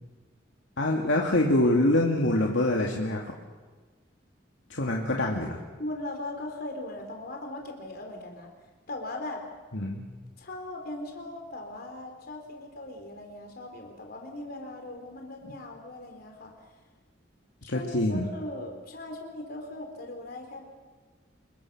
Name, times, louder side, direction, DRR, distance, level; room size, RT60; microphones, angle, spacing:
voice 1, 0.8-3.3 4.7-5.6 9.7-10.1 17.7-18.3, left 1 dB, 85° left, 0 dB, 2.3 m, -25 dB
voice 2, 5.8-8.5 8.9-9.4 10.4-16.5 17.6-20.7, left 1 dB, 55° left, 2 dB, 3.6 m, -39 dB
28.0 x 22.5 x 6.1 m, 1.4 s
head